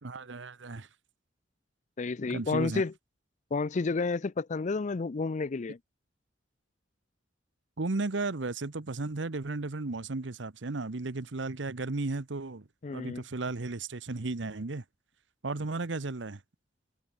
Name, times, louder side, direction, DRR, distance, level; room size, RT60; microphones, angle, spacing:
voice 1, 0.0-0.9 2.3-2.8 7.8-14.8 15.4-16.4, right 3 dB, 75° right, 1.0 m, -34 dB
voice 2, 2.0-2.9 3.5-5.8 12.8-13.2, left 4 dB, 40° left, 0.5 m, -30 dB
head